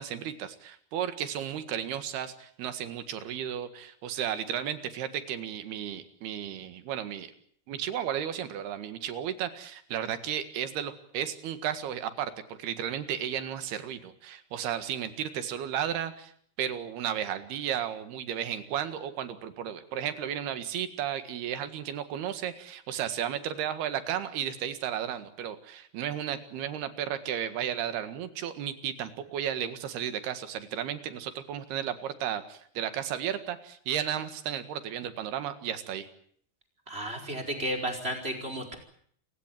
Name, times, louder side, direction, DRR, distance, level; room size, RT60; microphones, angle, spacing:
voice 1, 0.0-7.3 7.7-16.3 16.6-36.1, right 10 dB, 85° right, 10 dB, 3.8 m, -34 dB
voice 2, 36.9-38.7, right 1 dB, 15° right, 3 dB, 5.0 m, -33 dB
28.5 x 16.0 x 9.0 m, 0.63 s
omnidirectional pair, 4.4 m